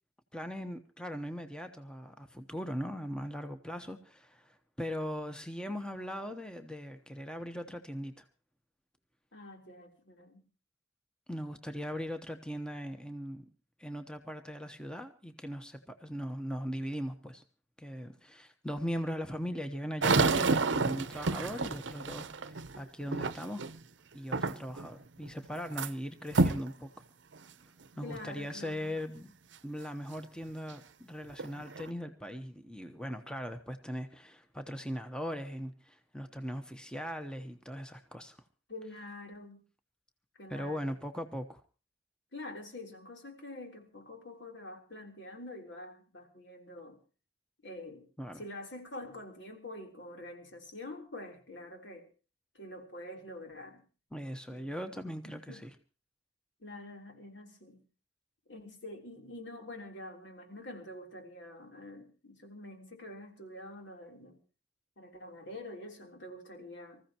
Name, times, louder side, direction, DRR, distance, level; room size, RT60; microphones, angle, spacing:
voice 1, 0.3-8.2 11.3-13.4 13.8-17.4 17.8-23.7 24.1-26.9 28.0-29.3 29.6-38.4 40.5-41.6 48.2-48.4 54.1-55.7, equal, 5° left, 1.0 m, -39 dB
voice 2, 9.3-10.5 28.0-29.0 38.7-39.6 40.4-40.9 42.3-47.0 47.6-48.1 48.3-52.1 52.5-53.8 54.5-54.7 55.2-55.7 56.6-57.8 58.5-64.4 65.0-67.0, left 1 dB, 75° left, 3.6 m, -46 dB
sound 1, 20.0-23.8 24.3-24.9 25.2-25.9 26.3-26.7 27.3-27.4 28.1-28.2 30.7-30.8 31.3-31.9, right 3 dB, 85° right, 0.8 m, -29 dB
25.5 x 15.0 x 3.0 m
head